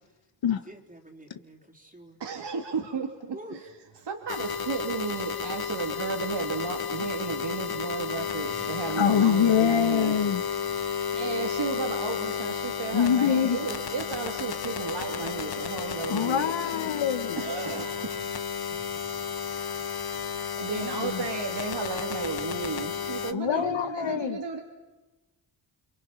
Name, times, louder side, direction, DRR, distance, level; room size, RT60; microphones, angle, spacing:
voice 1, 0.7-2.2 3.3-3.6 23.5-24.2, right 1 dB, 15° right, 0 dB, 3.5 m, -45 dB
voice 2, 2.2-3.6 4.0-10.3 10.6-10.8 11.2-16.8 17.4-18.3 20.6-24.6, right 5 dB, 65° right, 1 dB, 2.8 m, -34 dB
sound 1, 4.3-23.3, left 7 dB, 55° left, 1.2 m, -32 dB
voice 3, 9.0-10.4 12.9-13.6 16.1-17.4 20.8-21.2 23.3-24.4, left 8 dB, 75° left, 11 dB, 1.5 m, -24 dB
29.5 x 23.5 x 5.9 m, 1.1 s
cardioid pair, 60°, 46 cm